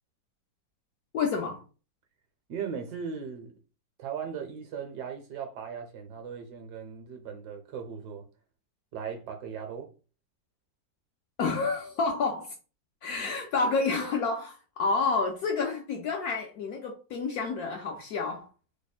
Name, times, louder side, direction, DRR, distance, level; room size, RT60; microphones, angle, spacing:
voice 1, 1.1-1.6 11.4-12.5 13.0-18.5, left 4 dB, 70° left, 0.9 m, -29 dB
voice 2, 2.5-3.5 4.0-8.3 8.9-9.9, right 7 dB, 70° right, 1.2 m, -38 dB
3.3 x 2.1 x 4.0 m
omnidirectional pair, 2.1 m